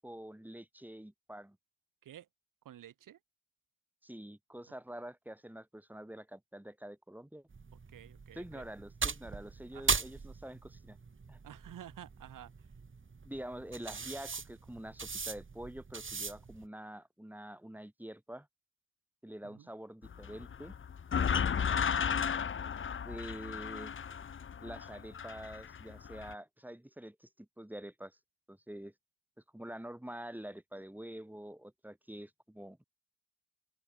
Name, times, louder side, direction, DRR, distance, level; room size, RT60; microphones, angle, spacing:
voice 1, 0.0-1.6 4.0-7.5 8.3-11.0 11.3-11.4 13.2-18.5 19.2-20.7 23.0-23.9 24.6-28.2 28.5-28.9 29.5-32.8, right 1 dB, 5° right, 7.4 m, -46 dB
voice 2, 2.6-3.2 7.9-8.6 9.7-10.0 11.4-12.7 19.4-19.7 21.6-21.9, right 11 dB, 75° right, 4.9 m, -52 dB
sound 1, 7.5-16.6, right 4 dB, 40° right, 7.6 m, -39 dB
sound 2, 20.0-26.3, left 7 dB, 40° left, 0.9 m, -34 dB
open air
supercardioid pair, 65°, 32 cm